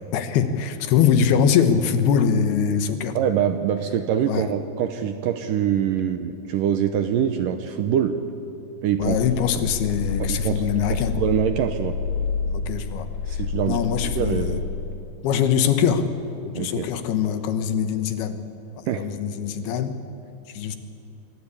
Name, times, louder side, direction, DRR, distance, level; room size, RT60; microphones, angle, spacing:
voice 1, 0.0-3.2 4.3-4.5 9.0-11.3 12.5-14.6 15.2-16.1 16.4-18.4 18.9-20.0 20.5-20.8, left 7 dB, 75° left, 9 dB, 3.1 m, -23 dB
voice 2, 3.2-8.2 8.8-9.2 9.6-9.7 10.2-12.0 13.3-14.6 16.5-16.9 18.9-19.1, right 9 dB, 75° right, 8 dB, 2.1 m, -24 dB
sound 1, 9.0-15.0, left 5 dB, 55° left, 3.7 m, -29 dB
26.0 x 22.5 x 8.5 m, 2.7 s
omnidirectional pair, 4.7 m